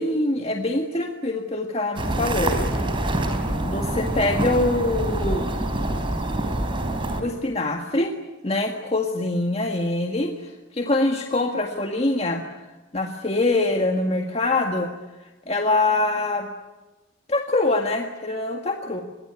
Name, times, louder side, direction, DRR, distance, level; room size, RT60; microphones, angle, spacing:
voice 1, 0.0-2.6 3.6-5.5 7.2-8.1 8.4-12.4 12.9-14.9 15.5-16.5 17.3-19.0, left 2 dB, 30° left, 3 dB, 1.8 m, -24 dB
sound 1, 2.0-7.2, right 1 dB, 25° right, 3.9 m, -25 dB
26.0 x 21.5 x 9.9 m, 1.1 s
head